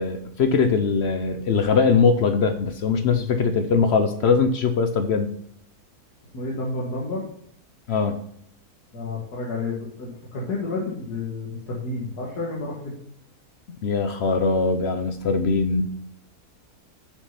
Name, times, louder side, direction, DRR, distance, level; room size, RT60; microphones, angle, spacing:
voice 1, 0.0-5.3 7.9-8.2 13.8-15.8, left 5 dB, 60° left, 8 dB, 0.7 m, -21 dB
voice 2, 6.3-7.2 8.9-12.9, left 3 dB, 90° left, -4 dB, 2.2 m, -30 dB
6.6 x 6.4 x 5.5 m, 0.72 s
omnidirectional pair, 1.6 m